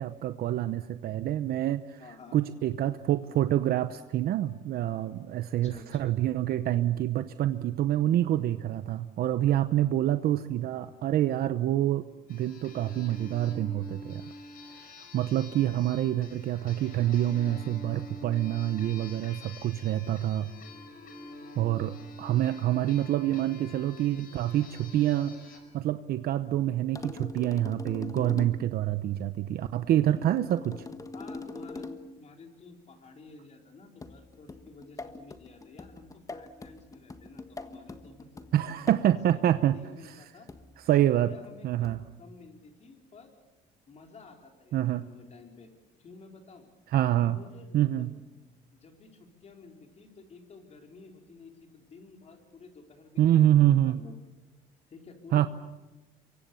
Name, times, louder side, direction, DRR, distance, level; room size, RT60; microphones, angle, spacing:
voice 1, 0.0-2.0 2.3-12.0 12.3-14.2 15.0-20.5 21.6-25.3 25.7-30.9 38.5-39.8 40.9-41.3 41.6-42.0 44.7-45.0 46.9-47.4 47.7-48.1 53.2-54.0 55.3-55.5, right 12 dB, 65° right, 11 dB, 0.8 m, -26 dB
voice 2, 2.0-2.4 5.5-6.2 31.1-31.9 32.1-38.5 39.0-40.5 41.2-43.3 43.9-45.7 46.0-46.7 47.2-48.1 48.7-53.4 53.8-54.2 54.9-55.5, left 4 dB, 40° left, 3 dB, 4.3 m, -52 dB
sound 1, 12.3-25.6, left 2 dB, 60° left, 5.3 m, -46 dB
sound 2, 27.0-28.7 30.2-32.2 34.0-39.2 40.5-40.8 41.8-42.2, left 3 dB, 20° left, 1.4 m, -42 dB
27.5 x 23.5 x 7.0 m, 1.1 s
cardioid pair, 110°, 17 cm